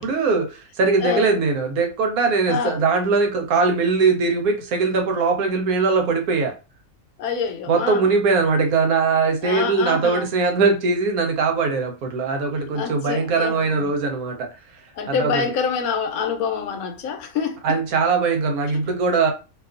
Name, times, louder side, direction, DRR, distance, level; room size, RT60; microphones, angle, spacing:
voice 1, 0.0-6.5 7.7-14.5 15.1-15.4 17.6-19.3, right 4 dB, 85° right, 1.1 m, -21 dB
voice 2, 1.0-1.4 2.5-2.8 7.2-8.1 9.4-10.3 12.7-13.9 15.0-17.6, left 6 dB, 80° left, 1.1 m, -26 dB
2.6 x 2.3 x 2.4 m
omnidirectional pair, 1.5 m